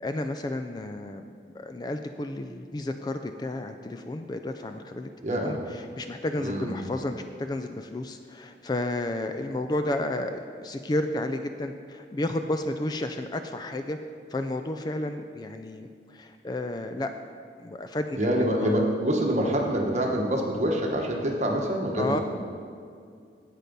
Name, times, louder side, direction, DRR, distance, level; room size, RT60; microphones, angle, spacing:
voice 1, 0.0-5.1 5.4-14.0 14.3-17.1 17.6-18.8 22.0-22.2, left 1 dB, 25° left, 7 dB, 0.3 m, -32 dB
voice 2, 5.2-5.6 6.4-6.7 18.2-22.2, right 1 dB, 40° right, 1 dB, 1.2 m, -26 dB
8.4 x 8.1 x 5.3 m, 2.3 s
head